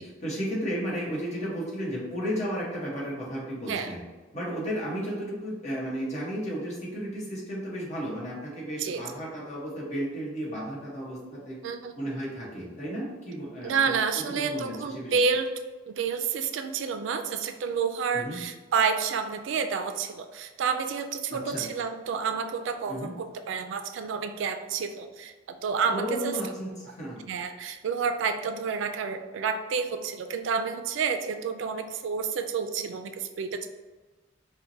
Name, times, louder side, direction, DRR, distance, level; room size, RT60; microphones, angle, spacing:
voice 1, 0.0-4.0 4.3-11.6 12.0-15.2 18.1-18.4 21.3-21.6 22.9-23.1 25.9-27.2, equal, 40° left, -5 dB, 1.1 m, -33 dB
voice 2, 11.6-11.9 13.6-15.5 15.9-26.4 27.3-33.7, right 5 dB, 70° right, 7 dB, 0.3 m, -29 dB
4.4 x 2.1 x 2.7 m, 1.3 s
head